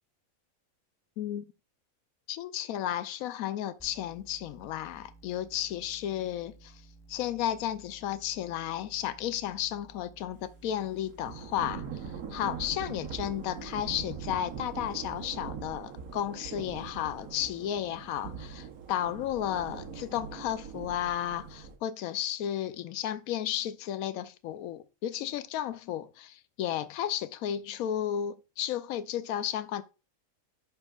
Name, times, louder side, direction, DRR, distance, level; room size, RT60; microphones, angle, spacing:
voice 1, 1.2-1.5 2.3-6.8 7.1-12.1 12.3-29.8, left 11 dB, 85° left, 1.0 m, -33 dB
sound 1, 3.8-15.2, right 3 dB, 5° left, 0.4 m, -56 dB
Thunder / Rain, 11.2-21.8, right 6 dB, 85° right, 1.5 m, -42 dB
11.5 x 4.3 x 2.4 m
omnidirectional pair, 1.5 m